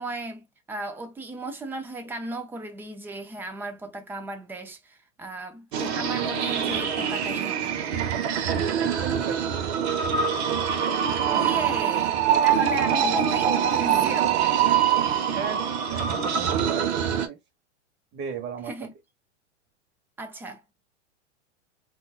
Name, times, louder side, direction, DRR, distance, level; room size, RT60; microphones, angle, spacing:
voice 1, 0.0-7.7 11.3-14.4 18.7-18.9 20.2-20.6, right 2 dB, 5° right, 0.4 m, -35 dB
sound 1, 5.7-17.3, right 8 dB, 60° right, 0.9 m, -24 dB
voice 2, 8.8-9.9 15.3-17.4 18.1-18.9, right 8 dB, 30° right, 1.1 m, -36 dB
3.7 x 2.4 x 2.3 m
hypercardioid pair, 110°, 36 cm